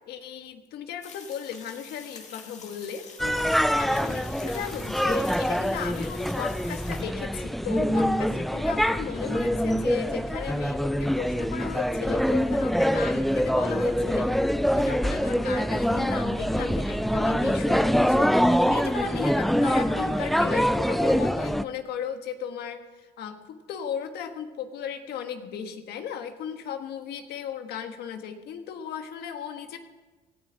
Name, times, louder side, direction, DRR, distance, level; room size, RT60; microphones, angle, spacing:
voice 1, 0.1-29.8, left 8 dB, 75° left, 7 dB, 1.5 m, -36 dB
sound 1, 1.0-7.0, left 5 dB, 40° left, 2.1 m, -46 dB
sound 2, 3.2-21.6, equal, ahead, 0.4 m, -25 dB
18.0 x 14.5 x 4.0 m, 1.2 s
cardioid pair, 110°, 17 cm